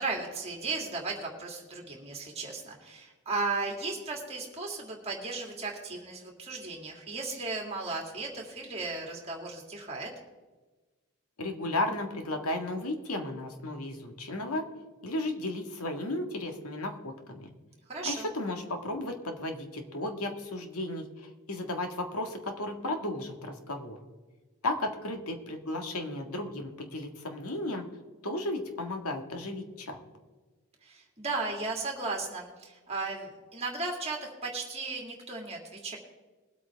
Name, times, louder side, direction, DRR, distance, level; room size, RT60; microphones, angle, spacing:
voice 1, 0.0-10.1 17.9-18.3 30.8-36.0, right 3 dB, 30° right, 0 dB, 2.5 m, -35 dB
voice 2, 11.4-14.6 15.0-17.5 18.0-24.0 24.6-27.9 28.2-30.0, left 1 dB, 85° left, 5 dB, 1.7 m, -34 dB
21.5 x 8.4 x 3.5 m, 1.3 s
head